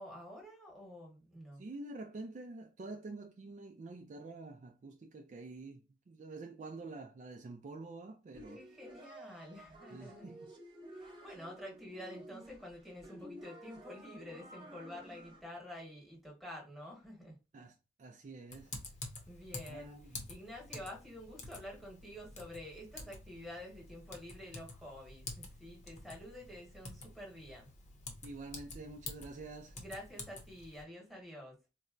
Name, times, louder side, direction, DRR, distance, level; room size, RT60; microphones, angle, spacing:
voice 1, 0.0-1.6 8.5-10.3 10.9-17.4 19.3-27.7 29.7-31.6, left 1 dB, ahead, 1.2 m, -49 dB
voice 2, 1.6-8.6 9.9-10.5 17.5-18.7 19.7-20.3 28.2-29.8, right 3 dB, 45° right, 0.3 m, -48 dB
sound 1, 8.3-15.4, right 1 dB, 25° right, 0.7 m, -52 dB
Typing, 18.5-30.8, left 3 dB, 40° left, 0.7 m, -49 dB
4.0 x 2.1 x 2.4 m
head